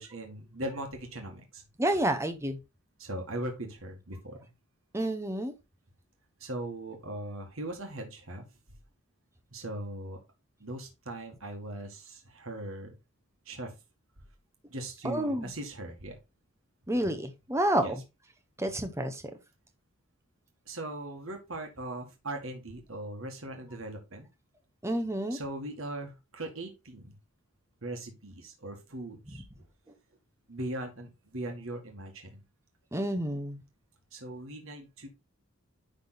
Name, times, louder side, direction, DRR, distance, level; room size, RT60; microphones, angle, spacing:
voice 1, 0.0-1.4 3.0-4.4 6.4-8.4 9.5-10.2 10.6-12.9 13.5-13.7 14.7-16.2 17.8-17.9 20.7-24.3 25.3-27.1 27.8-29.4 30.5-32.4 34.1-35.1, right 1 dB, 65° right, 1.9 m, -39 dB
voice 2, 1.8-2.6 4.9-5.5 15.0-15.5 16.9-18.0 18.6-19.2 24.8-25.4 29.3-29.4 32.9-33.6, right 1 dB, 10° right, 1.0 m, -29 dB
10.5 x 3.7 x 3.9 m
head